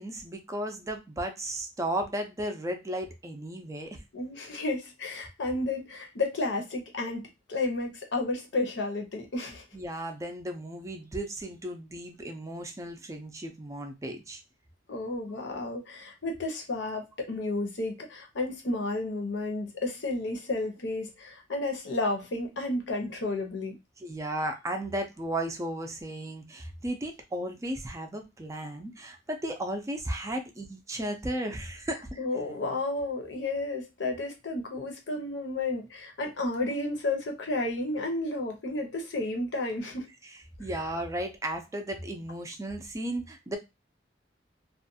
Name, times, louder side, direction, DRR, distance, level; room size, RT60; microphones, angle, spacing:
voice 1, 0.0-4.0 9.7-14.4 24.0-32.2 40.6-43.6, right 1 dB, 15° right, 5 dB, 0.4 m, -35 dB
voice 2, 4.1-9.6 14.9-23.8 32.2-40.1, left 2 dB, 85° left, 3 dB, 0.8 m, -32 dB
2.4 x 2.2 x 2.6 m, 0.23 s
head